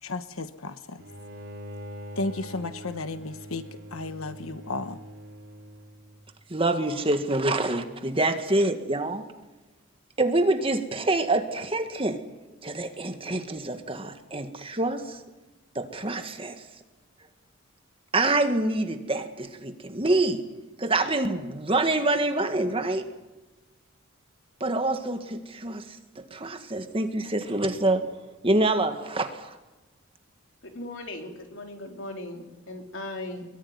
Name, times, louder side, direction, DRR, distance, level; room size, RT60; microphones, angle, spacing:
voice 1, 0.0-1.0 2.2-5.0, left 2 dB, 85° left, 11 dB, 1.2 m, -34 dB
Bowed string instrument, 1.0-6.2, equal, 55° right, 3.5 m, -43 dB
voice 2, 6.5-9.2 10.2-12.2 12.6-15.2 15.8-16.6 18.1-20.4 20.8-23.0 24.6-25.8 26.3-28.1 28.4-29.5, right 2 dB, 25° right, 7 dB, 1.8 m, -26 dB
voice 3, 30.6-33.5, left 2 dB, 65° left, 3 dB, 3.7 m, -38 dB
23.0 x 22.5 x 9.6 m, 1.1 s
head